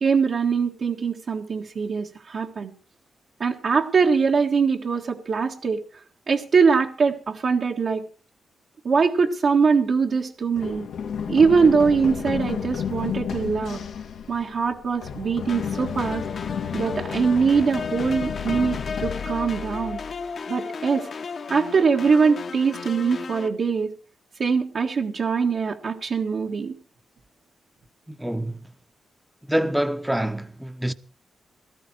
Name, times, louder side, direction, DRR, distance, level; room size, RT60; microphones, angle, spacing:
voice 1, 0.0-2.7 3.4-5.8 6.3-8.0 8.8-10.9 11.3-13.8 14.3-16.2 16.7-20.0 20.5-21.1 21.5-23.9 24.4-26.8, right 5 dB, 60° right, 1.7 m, -22 dB
Run, 10.6-20.3, left 7 dB, 90° left, 2.3 m, -32 dB
sound 1, 15.5-23.5, left 5 dB, 60° left, 1.7 m, -34 dB
voice 2, 28.1-28.6 29.5-30.9, right 1 dB, 5° right, 1.1 m, -26 dB
17.5 x 13.5 x 4.6 m
cardioid pair, 90°, 0 cm